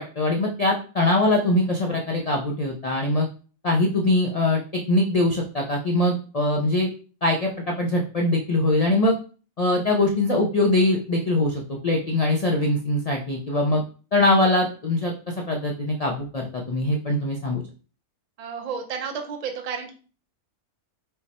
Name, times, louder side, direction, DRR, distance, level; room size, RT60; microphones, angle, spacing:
voice 1, 0.0-3.3 3.6-4.6 4.9-6.9 7.2-9.2 9.6-13.8 14.1-17.6, left 1 dB, 80° left, 0 dB, 0.3 m, -22 dB
voice 2, 18.4-19.9, right 6 dB, 40° right, 3 dB, 0.5 m, -31 dB
5.4 x 2.1 x 4.1 m, 0.37 s
omnidirectional pair, 1.5 m